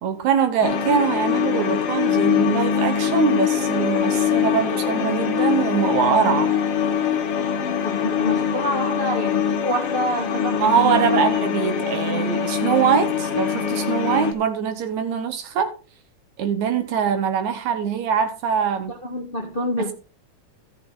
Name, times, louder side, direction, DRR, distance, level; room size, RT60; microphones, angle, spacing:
voice 1, 0.0-6.5 10.6-15.7 16.4-18.9 19.8-19.9, right 7 dB, 70° right, 2.5 m, -23 dB
sound 1, 0.6-14.3, left 7 dB, 55° left, 2.2 m, -23 dB
voice 2, 7.7-10.6 10.9-11.2 19.0-19.9, left 1 dB, 25° left, 1.3 m, -27 dB
14.0 x 6.8 x 3.9 m
omnidirectional pair, 3.6 m